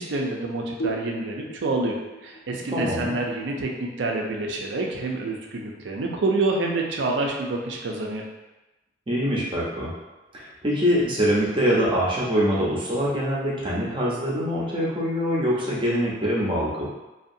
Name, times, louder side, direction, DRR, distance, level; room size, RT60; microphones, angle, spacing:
voice 1, 0.0-2.0 2.2-8.2, right 2 dB, 75° right, 1 dB, 0.4 m, -27 dB
sound 1, 0.8-4.2, right 2 dB, 60° left, 0.4 m, -37 dB
voice 2, 2.7-3.1 9.1-9.9 10.3-16.9, equal, 25° right, -5 dB, 0.6 m, -24 dB
2.7 x 2.3 x 2.5 m, 1.1 s
head